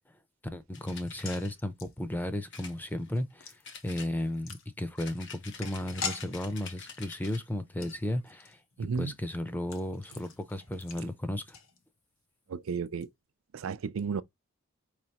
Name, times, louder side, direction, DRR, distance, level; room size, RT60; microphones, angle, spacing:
voice 1, 0.4-3.6 3.8-8.6 9.0-11.6, left 1 dB, 10° left, 0.5 m, -34 dB
sound 1, 0.7-1.5 2.5-3.3 3.6-4.5 5.0-7.5, left 6 dB, 60° left, 1.1 m, -47 dB
sound 2, 1.0-12.2 12.5-12.6 12.9-13.0, left 6 dB, 85° left, 1.0 m, -45 dB
voice 2, 8.8-9.1 12.5-13.1 13.5-14.2, right 5 dB, 85° right, 0.4 m, -33 dB
4.8 x 3.2 x 2.8 m
head